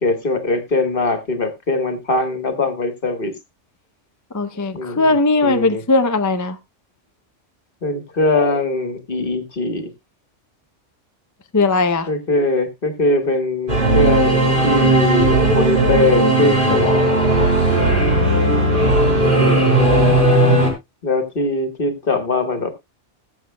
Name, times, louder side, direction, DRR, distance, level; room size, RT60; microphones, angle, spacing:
voice 1, 0.0-3.3 4.7-5.2 5.4-5.8 7.8-9.9 12.1-17.1 19.3-19.7 21.0-22.7, left 2 dB, 45° left, 1.6 m, -21 dB
voice 2, 4.3-6.6 11.5-12.1 17.8-18.9, left 3 dB, 25° left, 0.4 m, -19 dB
Singing / Musical instrument, 13.7-20.7, right 1 dB, 45° right, 4.0 m, -16 dB
20.5 x 7.3 x 2.2 m
omnidirectional pair, 1.3 m